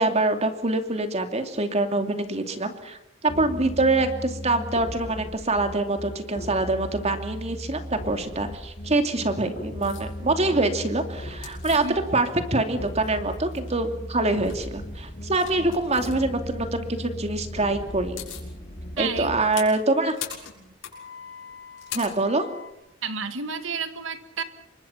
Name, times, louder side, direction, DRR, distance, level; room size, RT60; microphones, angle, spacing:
voice 1, 0.0-3.0 3.2-11.8 12.1-18.2 19.0-20.2 21.9-22.4, right 2 dB, 35° right, 6 dB, 2.6 m, -25 dB
sound 1, 3.3-19.4, equal, 40° left, 2.6 m, -37 dB
sound 2, 9.8-10.1 11.4-12.5 12.8-13.8 14.3-14.6 15.3-16.1 17.6-17.7 17.9-18.5 19.0-22.7, left 10 dB, 80° left, 6.6 m, -40 dB
voice 2, 19.0-19.3 20.6-20.7 23.0-24.4, right 5 dB, 70° right, 10 dB, 1.9 m, -31 dB
28.5 x 24.0 x 5.8 m, 0.83 s
head